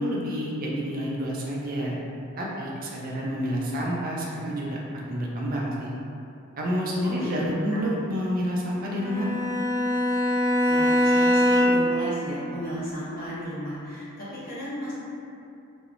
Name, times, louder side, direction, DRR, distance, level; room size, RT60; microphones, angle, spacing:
voice 1, 0.0-2.0 2.4-4.8 5.1-5.9 6.6-9.3, equal, 40° right, -4 dB, 0.4 m, -28 dB
Bowed string instrument, 8.9-12.0, equal, 85° left, 0.8 m, -22 dB
voice 2, 10.7-14.9, equal, 40° left, -11 dB, 0.8 m, -34 dB
2.4 x 2.0 x 2.9 m, 2.6 s
head